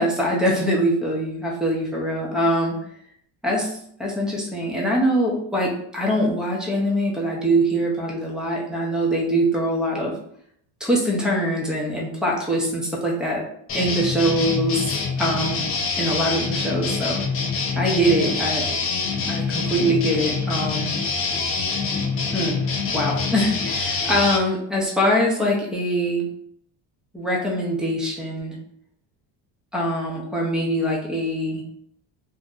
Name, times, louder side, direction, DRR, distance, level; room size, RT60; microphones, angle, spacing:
voice 1, 0.0-2.8 3.4-10.1 10.8-13.4 13.7-14.9 15.2-15.6 15.9-17.2 17.7-18.6 19.2-20.9 22.3-22.6 22.9-26.2 27.1-28.6 29.7-31.6, equal, ahead, -3 dB, 0.7 m, -23 dB
sound 1, 13.7-24.4, left 4 dB, 35° left, 0.5 m, -25 dB
2.7 x 2.2 x 3.6 m, 0.67 s
cardioid pair, 130°, 42 cm